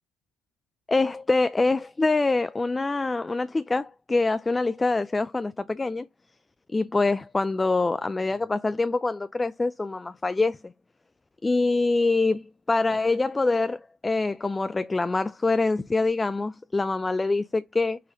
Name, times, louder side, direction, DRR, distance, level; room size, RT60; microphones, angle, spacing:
voice 1, 0.9-6.1 6.7-10.7 11.4-18.0, left 3 dB, 20° left, 0.4 m, -25 dB
5.6 x 3.2 x 2.9 m
hypercardioid pair, 70°, 0 cm